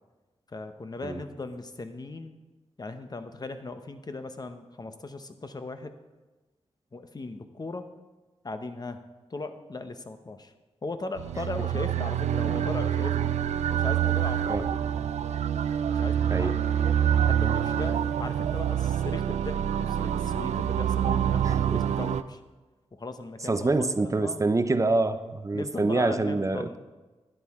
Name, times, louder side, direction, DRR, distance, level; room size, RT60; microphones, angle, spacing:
voice 1, 0.5-2.4 2.8-5.9 6.9-7.9 8.4-9.0 9.3-10.5 10.8-13.4 13.7-14.8 15.9-22.4 22.9-24.5 25.5-26.8, left 3 dB, 35° left, 9 dB, 0.8 m, -38 dB
sound 1, 11.2-22.2, right 9 dB, 85° right, 0.4 m, -26 dB
voice 2, 21.5-21.9 23.5-26.8, right 3 dB, 30° right, 11 dB, 0.6 m, -26 dB
11.5 x 10.5 x 3.6 m, 1.2 s
cardioid pair, 70°, 11 cm